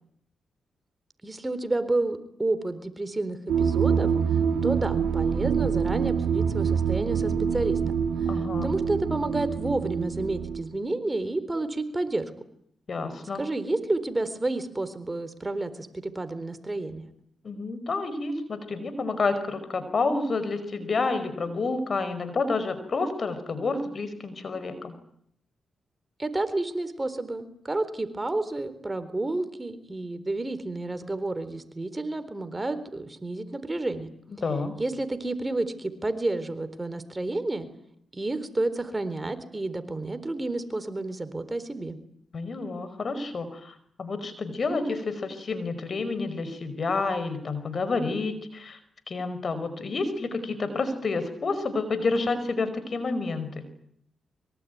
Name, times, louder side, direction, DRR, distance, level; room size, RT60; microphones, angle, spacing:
voice 1, 1.2-7.8 8.6-12.3 13.4-17.1 26.2-34.1 34.8-37.7 38.1-42.0, right 2 dB, 25° right, 12 dB, 4.0 m, -30 dB
sound 1, 3.5-10.6, right 7 dB, 85° right, 3.1 m, -26 dB
voice 2, 8.2-8.7 12.9-13.4 17.4-24.9 34.4-34.7 42.3-48.8 49.1-53.7, left 3 dB, 50° left, 12 dB, 5.1 m, -29 dB
25.0 x 24.5 x 9.5 m, 0.70 s
supercardioid pair, 55°, 0 cm